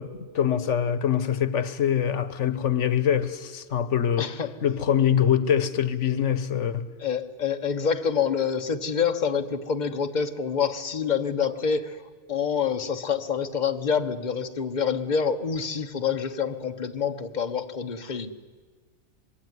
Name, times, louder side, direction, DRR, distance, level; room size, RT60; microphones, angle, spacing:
voice 1, 0.0-4.3 4.6-6.9, left 9 dB, 80° left, 1.4 m, -24 dB
voice 2, 4.2-4.5 7.0-12.0 12.3-18.3, left 6 dB, 40° left, 1.3 m, -27 dB
26.0 x 21.0 x 9.7 m
omnidirectional pair, 1.2 m